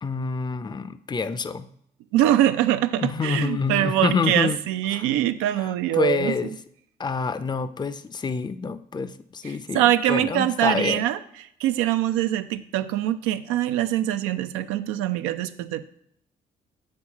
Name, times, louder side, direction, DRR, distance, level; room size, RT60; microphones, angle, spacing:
voice 1, 0.0-1.7 3.0-4.6 4.9-5.1 5.6-6.5 7.0-11.0, left 5 dB, 20° left, 13 dB, 0.5 m, -27 dB
voice 2, 2.1-6.3 9.4-11.2 11.6-15.8, right 13 dB, 80° right, 11 dB, 0.5 m, -23 dB
8.6 x 4.3 x 4.8 m, 0.71 s
hypercardioid pair, 50°, 21 cm